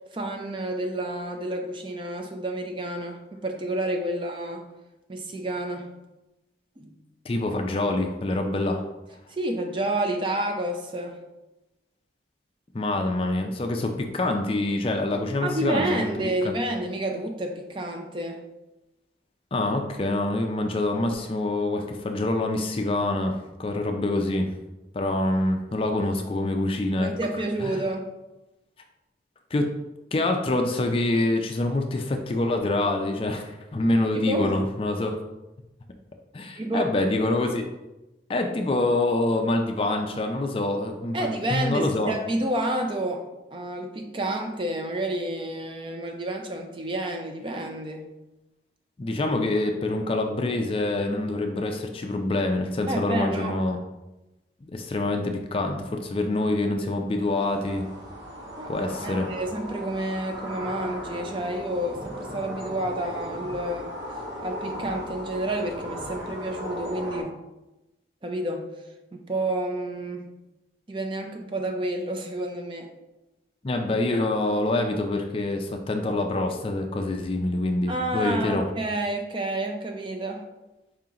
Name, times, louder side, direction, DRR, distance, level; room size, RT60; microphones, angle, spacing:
voice 1, 0.1-4.7 5.1-5.9 6.8-6.9 9.3-11.2 15.4-18.4 27.0-28.1 34.1-34.6 36.6-36.9 41.1-48.1 52.9-53.6 58.6-63.9 64.4-67.3 68.2-68.7 69.1-70.2 70.9-72.9 77.9-80.4, right 1 dB, 30° right, 4 dB, 0.5 m, -29 dB
voice 2, 7.3-8.8 12.7-16.1 16.4-16.5 19.5-23.3 23.6-24.5 24.9-27.1 27.6-27.8 29.5-29.7 30.1-35.2 36.3-37.7 38.3-42.2 49.0-53.8 54.6-57.9 58.7-59.3 73.6-78.7, left 2 dB, 30° left, 4 dB, 0.4 m, -26 dB
sound 1, 57.1-67.2, equal, 80° right, 1.3 m, -37 dB
4.9 x 2.8 x 3.7 m, 0.99 s
head